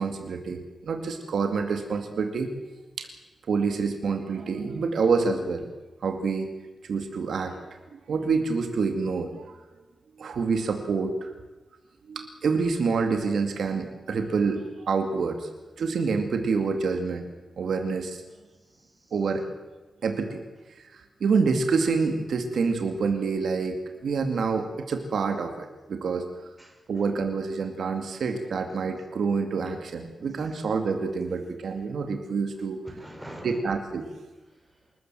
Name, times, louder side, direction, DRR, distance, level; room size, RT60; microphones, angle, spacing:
voice 1, 0.0-2.5 3.0-3.1 3.5-5.7 6.0-6.5 6.8-9.6 10.2-11.3 12.1-15.5 15.8-17.3 17.6-18.2 19.1-19.5 20.0-20.4 20.7-26.3 26.9-32.8 33.4-34.1, right 4 dB, 70° right, 6 dB, 2.3 m, -27 dB
voice 2, 18.6-19.1 26.6-27.1 32.8-33.7 34.5-34.8, right 1 dB, 10° right, 2 dB, 4.4 m, -45 dB
27.5 x 14.0 x 7.8 m, 1.2 s
wide cardioid pair, 165°, 0 cm